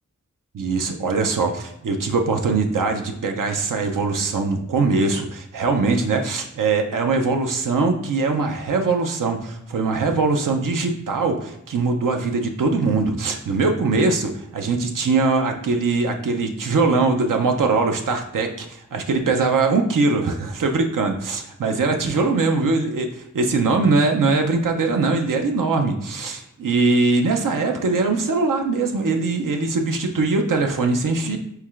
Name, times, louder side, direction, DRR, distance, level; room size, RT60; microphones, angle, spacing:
voice 1, 0.5-31.4, right 3 dB, 85° right, 4 dB, 0.5 m, -21 dB
4.6 x 3.2 x 2.4 m, 0.77 s
wide cardioid pair, 40°, 32 cm